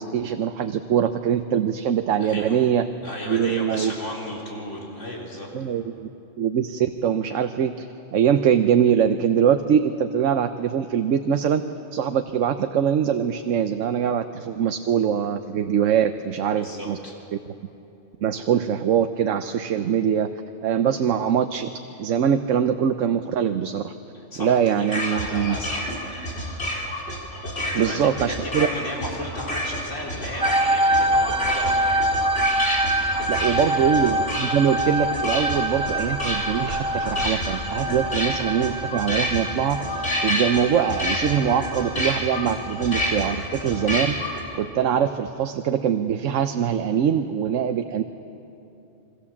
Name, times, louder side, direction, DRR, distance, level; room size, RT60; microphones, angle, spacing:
voice 1, 0.0-2.8 3.3-3.9 5.5-6.1 6.4-7.8 8.1-11.6 11.9-17.0 18.2-20.3 20.6-21.7 22.0-23.9 24.4-25.6 27.7-28.7 33.3-44.1 44.5-48.0, right 8 dB, 80° right, 8 dB, 1.1 m, -23 dB
voice 2, 2.2-2.7 3.0-5.5 16.4-17.1 24.1-25.9 27.6-31.9 32.9-33.8, left 1 dB, 75° left, -3 dB, 4.3 m, -35 dB
sound 1, 24.9-44.4, equal, 55° left, 4.3 m, -29 dB
sound 2, 30.4-43.9, right 1 dB, 10° right, 0.3 m, -26 dB
sound 3, 30.9-38.2, right 1 dB, 65° right, 7.4 m, -41 dB
27.0 x 23.5 x 7.3 m, 2.9 s
omnidirectional pair, 1.3 m